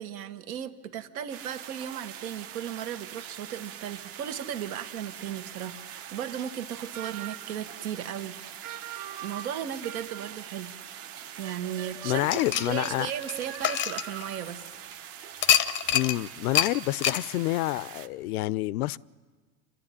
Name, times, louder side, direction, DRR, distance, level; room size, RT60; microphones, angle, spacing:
voice 1, 0.0-8.4 9.2-10.7 11.4-12.3 12.7-14.6, right 9 dB, 70° right, 1.5 m, -36 dB
sound 1, 1.3-18.1, right 9 dB, 30° right, 0.9 m, -44 dB
sound 2, 6.9-7.6 8.6-10.5 11.4-14.6, right 12 dB, 50° right, 1.1 m, -43 dB
voice 2, 12.0-13.1 15.9-19.0, left 17 dB, 75° left, 0.6 m, -28 dB
sound 3, 12.3-14.7 15.4-16.2 16.5-16.7 17.0-17.2, left 10 dB, 25° left, 0.6 m, -26 dB
28.0 x 11.5 x 9.9 m
supercardioid pair, 130°, 45 cm